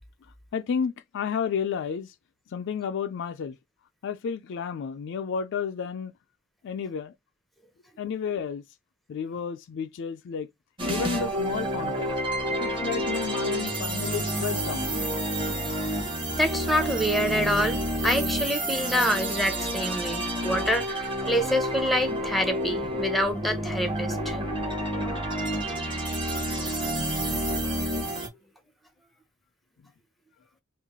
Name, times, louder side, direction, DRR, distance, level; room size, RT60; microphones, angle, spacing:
voice 1, 0.5-2.1 2.5-3.5 4.0-6.1 6.6-7.1 8.0-8.6 9.1-10.5 10.9-12.1 12.6-14.9, left 6 dB, 60° left, 0.3 m, -31 dB
sound 1, 10.8-28.3, right 1 dB, 25° right, 0.9 m, -29 dB
voice 2, 16.4-24.4, equal, ahead, 0.6 m, -27 dB
3.2 x 2.4 x 3.5 m
head